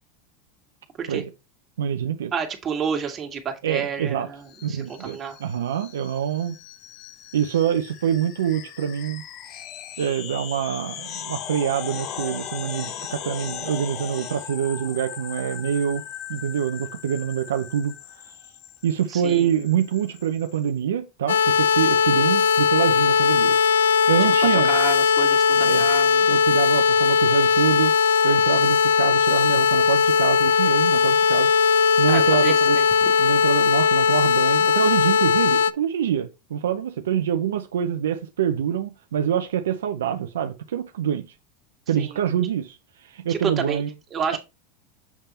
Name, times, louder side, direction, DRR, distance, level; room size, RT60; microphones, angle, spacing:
voice 1, 1.8-2.3 3.6-4.3 4.6-6.5 7.3-9.2 10.0-16.0 16.3-17.9 18.3-18.4 18.8-23.6 24.1-24.7 25.5-25.9 26.3-27.9 28.2-31.5 32.0-32.8 33.2-41.3 41.9-42.8 43.0-43.9, right 9 dB, 85° right, 0.5 m, -25 dB
voice 2, 2.3-5.4 19.1-19.5 24.5-26.3 32.1-33.1 42.0-42.2 43.3-43.8 44.1-44.4, right 6 dB, 30° right, 1.9 m, -30 dB
sound 1, 4.5-20.7, left 10 dB, 50° left, 0.8 m, -38 dB
sound 2, 21.3-35.7, left 6 dB, 90° left, 0.3 m, -19 dB
7.3 x 3.4 x 4.2 m
hypercardioid pair, 100°, 0 cm